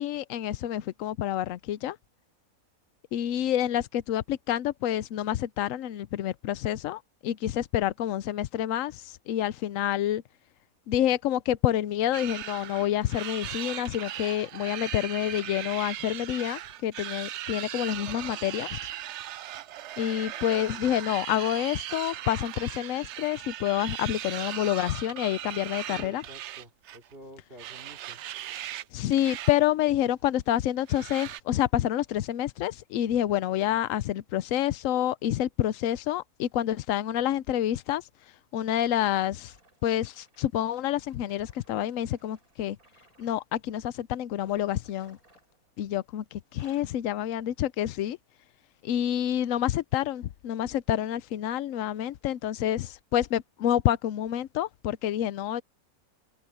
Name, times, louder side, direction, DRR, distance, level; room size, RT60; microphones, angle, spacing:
voice 1, 0.0-2.0 3.1-10.2 10.9-18.8 20.0-26.2 28.9-38.0 38.5-39.5 39.8-42.8 43.2-45.2 45.8-48.2 48.8-55.6, left 12 dB, 70° left, 1.0 m, -28 dB
sound 1, 12.1-27.1 27.6-28.8 29.1-29.5 29.8-29.9 30.9-31.4, right 12 dB, 65° right, 0.7 m, -38 dB
voice 2, 25.8-28.2, right 1 dB, 40° right, 4.0 m, -49 dB
sound 2, 38.8-43.5 44.3-46.1 46.4-47.0 47.6-47.9 48.5-48.6, right 2 dB, 85° right, 7.6 m, -62 dB
open air
omnidirectional pair, 1.5 m